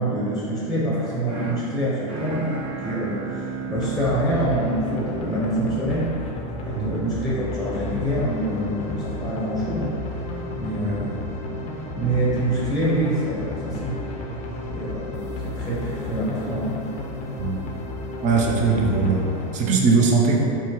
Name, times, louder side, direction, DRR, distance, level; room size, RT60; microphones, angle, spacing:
voice 1, 0.0-2.5 2.8-6.2 6.6-10.0 10.5-11.1 11.9-14.0 14.7-16.8, right 1 dB, ahead, -8 dB, 0.8 m, -26 dB
sound 1, 0.9-7.0, right 4 dB, 70° right, 1.2 m, -34 dB
sound 2, 3.7-19.5, left 1 dB, 35° left, 0.6 m, -33 dB
voice 2, 18.2-19.2 19.5-20.5, right 4 dB, 40° right, -1 dB, 0.6 m, -20 dB
4.2 x 2.2 x 3.0 m, 2.6 s
hypercardioid pair, 95°, 19 cm